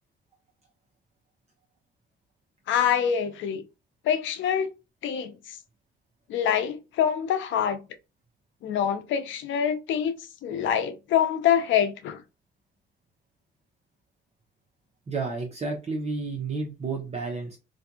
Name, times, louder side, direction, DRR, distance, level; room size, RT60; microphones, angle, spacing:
voice 1, 2.7-3.6 4.0-4.7 5.0-5.6 6.3-7.8 8.6-10.2 10.4-12.2, left 9 dB, 75° left, 0.5 m, -25 dB
voice 2, 15.1-17.6, right 3 dB, 35° right, 0.7 m, -31 dB
2.5 x 2.3 x 2.7 m
cardioid pair, 90°, 20 cm